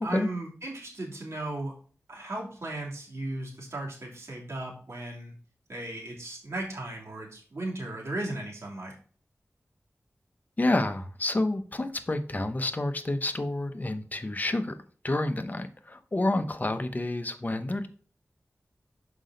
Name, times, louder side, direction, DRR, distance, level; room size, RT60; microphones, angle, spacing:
voice 1, 0.0-1.7 2.1-5.3 5.7-8.9, right 1 dB, 65° right, -3 dB, 2.6 m, -36 dB
voice 2, 10.6-14.7 15.0-17.9, left 2 dB, 35° left, 8 dB, 0.8 m, -29 dB
6.2 x 5.1 x 3.9 m, 0.43 s
wide cardioid pair, 75°, 5 cm